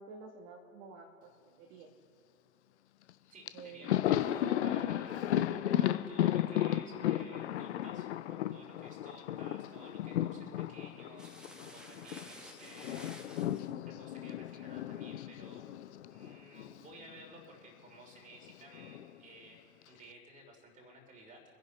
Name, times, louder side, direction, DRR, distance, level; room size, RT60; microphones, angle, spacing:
voice 1, 0.0-1.9 3.5-4.0 9.2-9.4, right 4 dB, 30° right, 1 dB, 1.4 m, -51 dB
Thunder, 3.1-3.2 3.5-12.3 12.5-16.9 17.1-17.3 18.4-19.1, left 12 dB, 50° left, 0.6 m, -34 dB
voice 2, 3.3-13.1 13.8-15.6 16.1-19.6 19.9-21.4, right 1 dB, 15° right, 1 dB, 3.0 m, -55 dB
sound 1, 11.2-13.7, equal, ahead, 0.9 m, -52 dB
25.0 x 10.5 x 3.2 m, 2.5 s
figure-of-eight pair, 105°, 44 cm